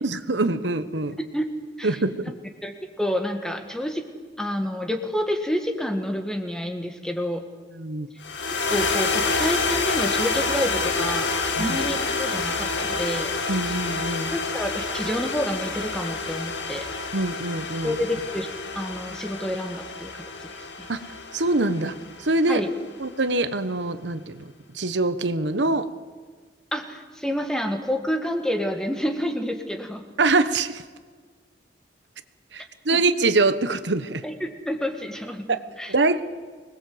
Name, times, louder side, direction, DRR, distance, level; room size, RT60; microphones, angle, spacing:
voice 1, 0.0-1.2 1.8-2.3 7.7-8.1 11.6-11.8 13.5-14.4 17.1-18.0 20.9-21.0 21.3-22.6 23.0-24.5 24.7-25.9 30.2-30.8 32.5-34.2 35.5-35.6 35.9-36.2, right 2 dB, 80° right, 11 dB, 1.2 m, -24 dB
voice 2, 2.6-4.0 4.4-7.4 8.7-13.3 14.3-16.9 17.8-18.5 18.8-20.5 20.8-20.9 22.5-22.7 26.7-30.0 32.9-33.0 34.2-35.9, equal, 5° left, 5 dB, 1.9 m, -29 dB
sound 1, 8.2-22.7, left 4 dB, 85° left, 2.3 m, -28 dB
25.0 x 20.5 x 8.0 m, 1.5 s
head